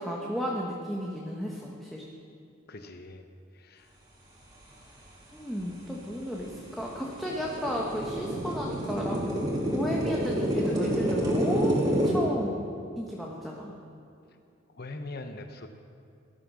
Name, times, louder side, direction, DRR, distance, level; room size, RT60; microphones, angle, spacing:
voice 1, 0.0-2.0 5.3-9.2 9.7-12.6 13.0-13.7, equal, ahead, -3 dB, 1.3 m, -33 dB
voice 2, 2.7-3.2 3.5-3.9 14.7-15.7, left 2 dB, 50° left, 6 dB, 0.9 m, -41 dB
sound 1, 5.6-5.7 6.2-12.1, right 1 dB, 20° right, 2.8 m, -28 dB
18.0 x 11.5 x 6.3 m, 2.6 s
head